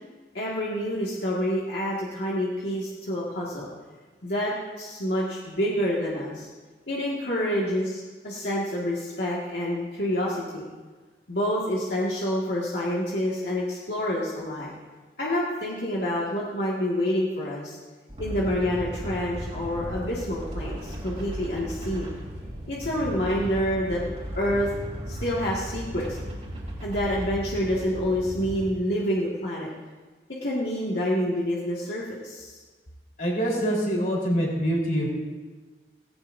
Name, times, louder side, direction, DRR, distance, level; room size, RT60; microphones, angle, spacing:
voice 1, 0.3-3.7 4.2-6.5 6.9-10.7 11.3-14.7 15.2-17.8 18.2-22.1 22.7-24.0 24.4-24.7 25.1-26.2 26.8-29.7 30.4-32.6, equal, 75° left, -6 dB, 2.0 m, -28 dB
sound 1, 18.1-28.7, equal, 40° right, 3.1 m, -36 dB
voice 2, 33.2-35.1, equal, 50° left, -3 dB, 4.0 m, -25 dB
18.0 x 16.0 x 2.7 m, 1.4 s
head